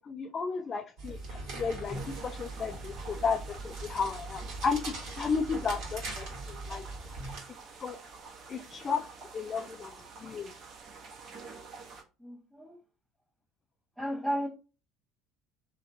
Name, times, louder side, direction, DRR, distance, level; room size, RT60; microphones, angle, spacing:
voice 1, 0.1-6.8 7.8-8.0 8.5-9.0 9.3-9.9 10.2-10.5, left 5 dB, 35° left, 0.3 m, -33 dB
sound 1, 1.0-7.4, right 2 dB, 65° right, 1.2 m, -41 dB
sound 2, 1.8-12.0, right 4 dB, 45° right, 0.8 m, -48 dB
voice 2, 12.2-12.8 14.0-14.5, equal, 5° right, 0.6 m, -33 dB
2.8 x 2.2 x 2.5 m
hypercardioid pair, 65°, 0 cm